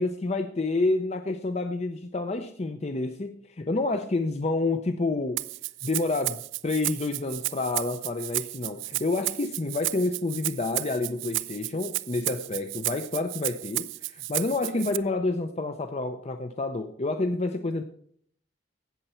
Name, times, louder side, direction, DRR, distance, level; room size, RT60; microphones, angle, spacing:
voice 1, 0.0-5.4 5.8-17.8, left 2 dB, 35° left, 7 dB, 0.5 m, -29 dB
Rattle (instrument), 5.4-15.0, right 19 dB, 80° right, 0.4 m, -33 dB
17.0 x 6.7 x 4.4 m, 0.62 s
head